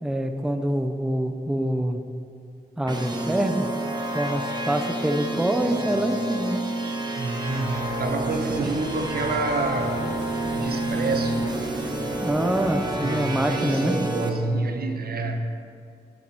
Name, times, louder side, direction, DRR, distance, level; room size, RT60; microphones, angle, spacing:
voice 1, 0.0-2.0 2.8-3.7 4.1-6.6 8.7-8.8 12.2-14.0, right 1 dB, 5° right, 6 dB, 0.5 m, -25 dB
sound 1, 2.9-14.3, right 1 dB, 25° right, 1.0 m, -29 dB
voice 2, 7.2-10.0 10.5-11.5 13.0-15.4, right 3 dB, 65° right, 5 dB, 1.0 m, -28 dB
sound 2, 7.4-14.0, right 1 dB, 90° right, 2.1 m, -39 dB
11.5 x 7.3 x 4.6 m, 2.4 s
wide cardioid pair, 105°, 17 cm